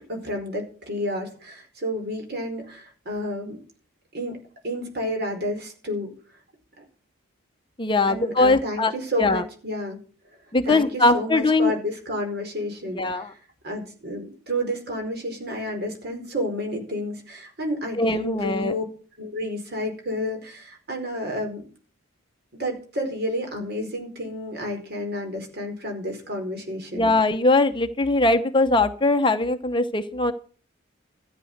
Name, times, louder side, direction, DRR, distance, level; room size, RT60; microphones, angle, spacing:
voice 1, 0.1-3.6 4.1-4.4 4.6-6.1 8.1-10.0 10.6-13.3 13.6-18.8 19.2-21.6 22.6-27.1, equal, 50° right, 3 dB, 4.7 m, -30 dB
voice 2, 7.8-8.9 9.2-9.4 10.5-11.7 12.9-13.3 18.0-18.7 26.9-30.3, left 2 dB, 25° left, 8 dB, 0.8 m, -21 dB
14.0 x 9.0 x 6.6 m, 0.40 s
head